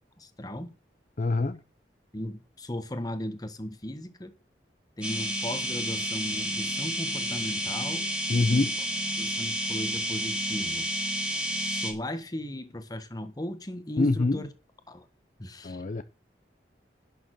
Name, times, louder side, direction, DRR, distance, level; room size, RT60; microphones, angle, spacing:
voice 1, 0.2-0.8 2.1-4.3 5.0-8.1 8.4-8.7 9.2-10.9 11.6-14.5 14.9-15.1 15.4-15.8, left 1 dB, 20° left, 1.5 m, -36 dB
voice 2, 1.2-1.6 8.3-8.7 14.0-14.5 15.6-16.0, left 3 dB, 45° left, 0.5 m, -25 dB
sound 1, 5.0-11.9, equal, 5° right, 2.7 m, -30 dB
11.5 x 6.7 x 6.6 m
head